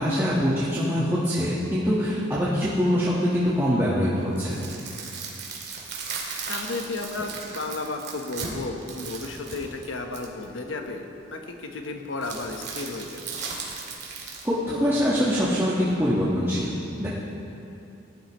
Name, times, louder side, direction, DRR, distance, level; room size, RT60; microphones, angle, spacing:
voice 1, 0.0-4.5 14.4-16.7 17.0-17.1, equal, 15° right, -9 dB, 1.5 m, -23 dB
sound 1, 4.2-10.4 12.2-14.4, right 5 dB, 60° right, 2.2 m, -36 dB
voice 2, 6.0-13.2, left 3 dB, 85° left, 4 dB, 1.2 m, -33 dB
19.5 x 12.0 x 3.1 m, 2.8 s
head